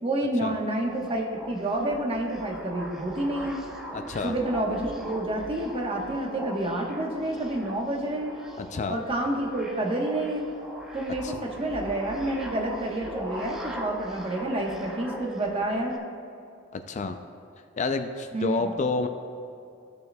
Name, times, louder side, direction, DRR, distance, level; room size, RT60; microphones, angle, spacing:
voice 1, 0.0-3.6 4.2-8.3 8.9-10.5 10.9-16.0 18.3-18.7, right 1 dB, 30° right, -1 dB, 1.1 m, -29 dB
sound 1, 0.7-16.0, equal, 5° right, 0.7 m, -40 dB
voice 2, 3.9-4.3 8.6-9.0 11.2-11.4 16.7-17.2 17.8-19.1, left 4 dB, 40° left, 8 dB, 0.4 m, -29 dB
14.5 x 6.6 x 2.2 m, 2.6 s
head